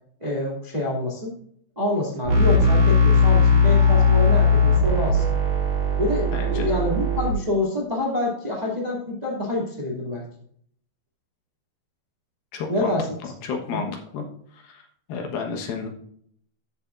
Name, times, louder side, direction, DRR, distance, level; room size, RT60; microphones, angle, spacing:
voice 1, 0.2-1.3 1.7-5.2 6.0-10.2 12.7-13.1 13.7-13.9, left 2 dB, 15° right, -2 dB, 1.5 m, -26 dB
sound 1, 2.3-7.3, left 3 dB, 55° right, 3.4 m, -18 dB
voice 2, 6.3-6.8 12.5-13.0 13.2-13.9 14.1-14.2 14.5-14.8 15.1-15.9, left 5 dB, 70° left, 3 dB, 2.9 m, -31 dB
13.0 x 7.1 x 2.5 m, 0.64 s
omnidirectional pair, 4.4 m